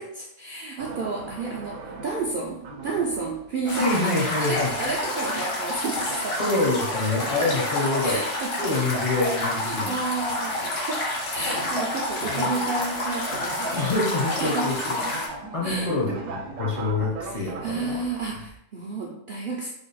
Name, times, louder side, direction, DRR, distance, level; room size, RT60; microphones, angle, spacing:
voice 1, 0.0-4.1 4.4-6.4 8.0-8.7 9.6-11.0 11.3-13.9 14.4-14.7 15.6-15.9 17.3-19.7, right 3 dB, 65° right, -2 dB, 0.5 m, -31 dB
sound 1, 0.8-18.6, right 3 dB, 85° right, 0.9 m, -40 dB
sound 2, 3.7-15.3, left 1 dB, 80° left, 1.2 m, -29 dB
voice 2, 3.7-4.7 6.4-8.2 8.6-10.0 12.2-12.5 13.7-15.0 15.5-18.0, left 2 dB, 35° left, -4 dB, 0.6 m, -26 dB
3.4 x 2.3 x 3.9 m, 0.76 s
omnidirectional pair, 1.3 m